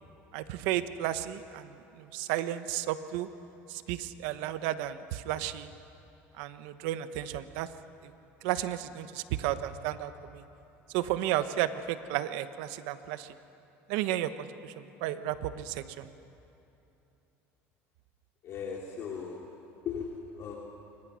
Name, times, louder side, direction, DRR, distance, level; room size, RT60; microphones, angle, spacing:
voice 1, 0.3-3.3 3.7-5.7 6.3-7.7 8.0-8.1 8.4-10.4 10.9-13.4 13.9-16.1, right 12 dB, 85° right, 11 dB, 1.1 m, -33 dB
voice 2, 18.4-19.4 19.8-20.6, left 6 dB, 50° left, -2 dB, 3.1 m, -37 dB
29.0 x 24.5 x 6.3 m, 2.9 s
cardioid pair, 120°, 6 cm